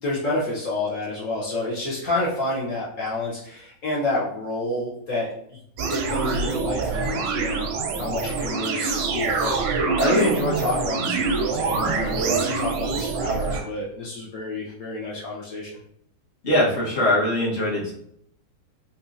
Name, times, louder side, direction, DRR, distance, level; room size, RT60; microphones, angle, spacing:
voice 1, 0.0-5.6 5.9-7.7 8.0-15.8, left 2 dB, 75° left, -6 dB, 0.7 m, -28 dB
sound 1, 5.8-13.6, right 4 dB, 85° right, 1.5 m, -25 dB
voice 2, 16.4-17.9, left 1 dB, 40° left, -6 dB, 0.8 m, -21 dB
4.0 x 2.9 x 2.4 m, 0.71 s
omnidirectional pair, 2.3 m